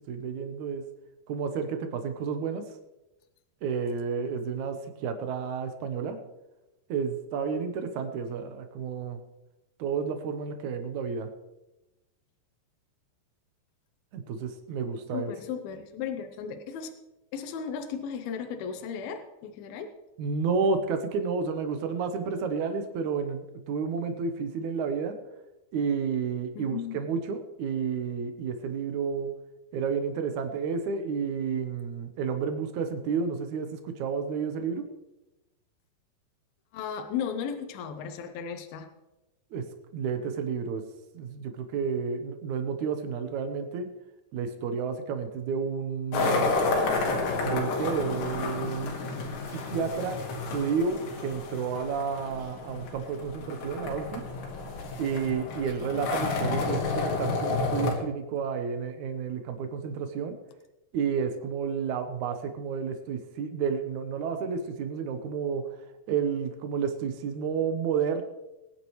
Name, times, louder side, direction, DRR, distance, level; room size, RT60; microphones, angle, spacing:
voice 1, 0.1-0.8 1.3-2.6 3.6-6.2 6.9-9.2 9.8-11.3 14.1-15.3 20.2-25.1 25.7-29.3 29.7-34.8 39.5-39.6 39.9-40.8 41.1-43.9 44.3-46.5 47.4-49.0 49.5-50.2 50.5-54.2 55.0-60.4 60.9-65.7 66.1-68.2, right 6 dB, 75° right, 7 dB, 1.7 m, -31 dB
voice 2, 15.1-16.9 17.3-19.9 26.6-27.0 36.7-38.9, left 7 dB, 75° left, 6 dB, 2.6 m, -35 dB
sound 1, 46.1-57.9, left 3 dB, 90° left, 4.1 m, -30 dB
21.5 x 9.9 x 3.1 m, 0.99 s
omnidirectional pair, 4.9 m